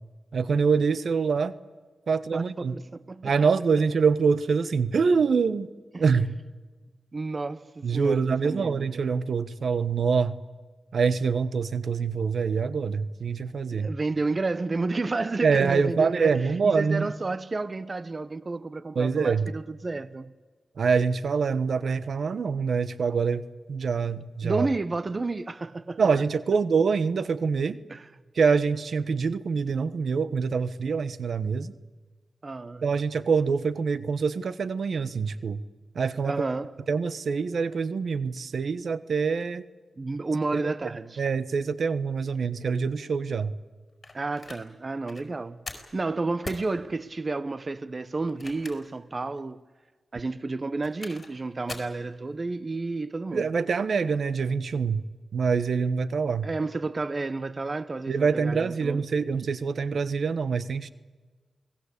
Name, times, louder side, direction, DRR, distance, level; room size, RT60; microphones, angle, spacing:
voice 1, 0.3-1.5 2.1-2.7 3.2-5.7 6.0-6.4 7.8-10.3 10.9-13.9 15.4-17.1 18.9-19.5 20.8-24.7 26.0-27.8 28.3-31.7 32.8-35.6 35.9-36.3 36.9-39.6 40.5-40.7 41.2-43.5 53.3-55.0 55.3-56.5 58.1-60.9, right 5 dB, 75° right, 1.1 m, -25 dB
voice 2, 2.3-3.3 5.9-6.1 7.1-8.9 13.7-20.3 24.4-26.1 27.9-28.1 32.4-32.8 36.2-36.7 40.0-41.2 44.1-49.6 50.1-53.5 56.4-59.0, right 3 dB, 40° right, 0.9 m, -31 dB
sound 1, 44.0-44.6 45.0-45.2 45.7-45.9 46.4-46.7 48.2-49.0 49.4-49.5 50.6-51.3 51.7-52.0, left 3 dB, 45° left, 5.0 m, -41 dB
28.0 x 19.5 x 8.3 m
cardioid pair, 65°, 0 cm